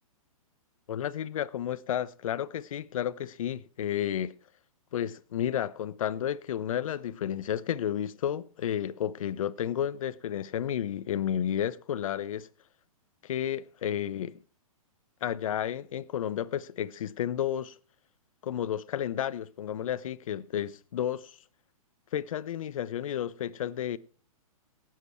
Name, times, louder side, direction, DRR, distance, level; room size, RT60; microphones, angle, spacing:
voice 1, 0.9-4.3 4.9-12.5 13.2-14.4 15.2-17.8 18.4-21.4 22.1-24.0, left 10 dB, 65° left, 0.8 m, -32 dB
18.0 x 7.6 x 4.5 m
hypercardioid pair, 130°, 18 cm